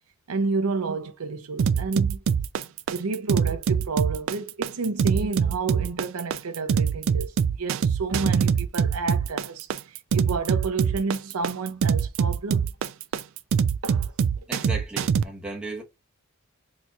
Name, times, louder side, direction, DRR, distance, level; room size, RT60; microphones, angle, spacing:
voice 1, 0.3-2.2 2.9-12.7 13.8-14.1, right 4 dB, 85° right, 0.6 m, -30 dB
sound 1, 1.6-15.2, right 6 dB, 60° right, 0.3 m, -23 dB
voice 2, 14.5-15.8, right 2 dB, 5° right, 0.9 m, -35 dB
4.2 x 2.8 x 2.3 m
head